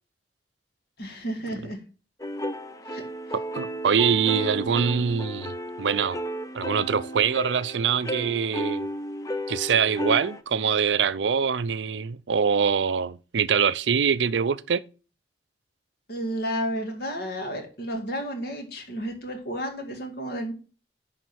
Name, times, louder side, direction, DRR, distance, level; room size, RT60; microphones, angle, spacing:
voice 1, 1.0-1.8 2.9-3.0 16.1-20.5, equal, 65° left, 2.3 m, -32 dB
sound 1, 2.2-10.4, equal, 20° left, 0.7 m, -33 dB
voice 2, 3.5-6.2 6.5-8.9 9.5-14.8, right 6 dB, 90° right, 0.5 m, -24 dB
10.5 x 4.0 x 6.2 m
head